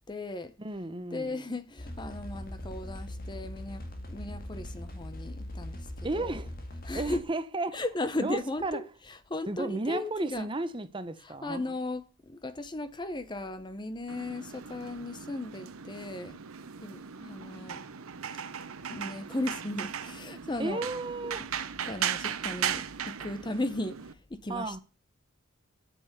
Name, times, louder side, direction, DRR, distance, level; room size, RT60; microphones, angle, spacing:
voice 1, 0.1-0.5 1.1-6.4 6.8-7.2 7.7-10.5 11.2-16.4 16.8-17.8 18.9-20.9 21.4-21.5 21.8-24.8, left 2 dB, 20° left, 0.7 m, -36 dB
voice 2, 0.6-1.4 6.0-6.5 6.9-7.8 8.2-8.8 9.5-11.6 20.6-21.5 24.5-24.8, right 2 dB, 25° right, 0.7 m, -33 dB
sound 1, 1.8-7.2, left 1 dB, 45° left, 2.1 m, -40 dB
sound 2, 14.1-24.1, right 8 dB, 85° right, 0.9 m, -37 dB
8.8 x 6.8 x 8.2 m
head